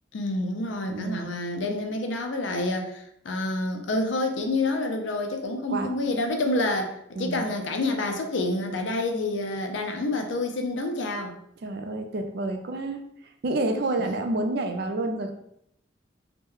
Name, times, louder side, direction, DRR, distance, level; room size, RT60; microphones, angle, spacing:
voice 1, 0.1-11.3, left 2 dB, 70° left, 4 dB, 0.5 m, -28 dB
voice 2, 0.9-1.3 5.7-5.9 7.1-7.4 11.6-13.0 13.4-15.3, right 2 dB, 55° right, 6 dB, 0.4 m, -28 dB
2.9 x 2.2 x 3.5 m, 0.75 s
head